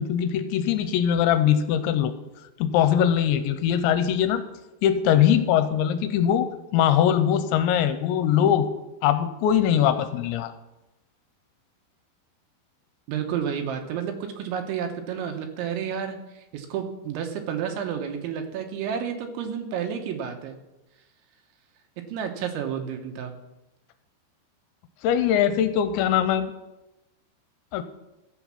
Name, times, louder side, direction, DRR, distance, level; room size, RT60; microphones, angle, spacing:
voice 1, 0.0-2.1 2.6-4.4 4.8-8.7 9.0-10.5 25.0-26.5 27.7-27.8, left 9 dB, 80° left, 10 dB, 2.8 m, -21 dB
voice 2, 13.1-20.6 22.1-23.3, right 8 dB, 85° right, 5 dB, 3.4 m, -31 dB
14.5 x 7.2 x 5.9 m, 0.99 s
omnidirectional pair, 5.4 m